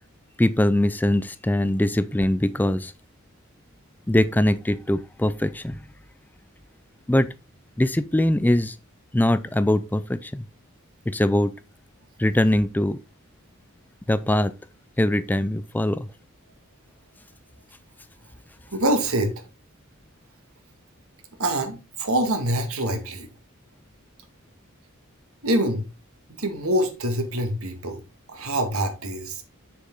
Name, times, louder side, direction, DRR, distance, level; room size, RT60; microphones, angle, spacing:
voice 1, 0.4-2.9 4.1-5.8 7.1-7.3 7.8-8.8 9.1-10.5 11.1-11.5 12.2-13.0 14.1-14.5 15.0-16.1, left 1 dB, 10° left, 0.4 m, -22 dB
voice 2, 18.7-19.3 21.4-23.3 25.4-25.8 26.4-28.0 28.3-29.4, right 1 dB, 85° right, 2.0 m, -25 dB
7.4 x 6.8 x 3.9 m
head